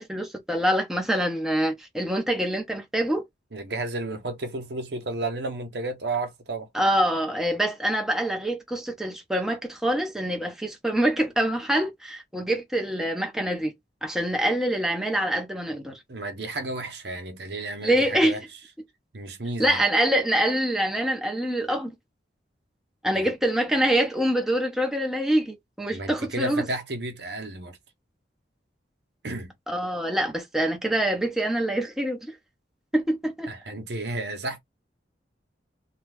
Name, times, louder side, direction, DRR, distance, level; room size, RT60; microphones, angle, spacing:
voice 1, 0.0-3.2 6.7-13.7 14.0-16.0 17.8-18.4 19.6-21.9 23.0-26.7 29.7-32.3 32.9-33.5, right 1 dB, 5° right, 0.9 m, -25 dB
voice 2, 3.5-6.7 16.1-18.4 19.1-19.8 23.1-23.3 25.9-27.8 29.2-29.5 33.5-34.6, right 2 dB, 70° right, 1.0 m, -32 dB
2.9 x 2.4 x 3.4 m
head